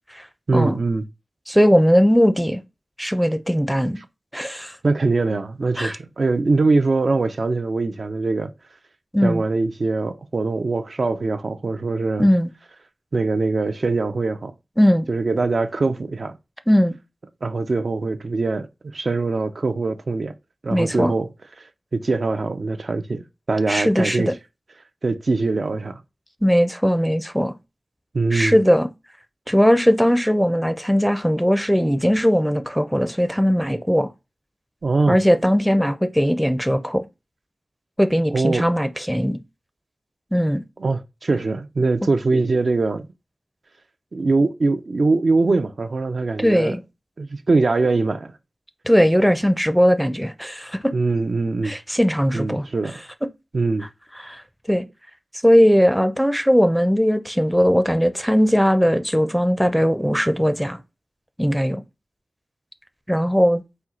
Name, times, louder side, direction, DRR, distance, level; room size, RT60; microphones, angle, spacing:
voice 1, 0.5-1.0 4.8-8.5 9.2-12.3 13.1-14.5 15.1-16.4 17.4-20.3 20.6-21.3 21.9-23.2 23.5-24.3 25.0-26.0 28.1-28.6 34.8-35.2 38.3-38.7 40.8-43.1 44.1-46.8 47.2-48.3 50.9-51.7 52.3-53.0 53.5-53.9, right 3 dB, 70° right, 0.4 m, -22 dB
voice 2, 1.5-2.6 3.0-4.0 4.3-4.8 5.8-6.0 9.1-9.4 12.2-12.5 14.8-15.1 16.7-17.0 20.7-21.1 23.7-24.3 26.4-27.6 28.3-28.9 29.5-34.1 35.1-37.0 38.0-39.4 40.3-40.6 46.4-46.8 48.9-50.9 51.6-52.7 54.2-54.4 54.7-54.8 55.4-60.8 61.4-61.8 63.1-63.6, equal, ahead, 0.5 m, -19 dB
4.3 x 2.3 x 3.7 m
wide cardioid pair, 50°, 0 cm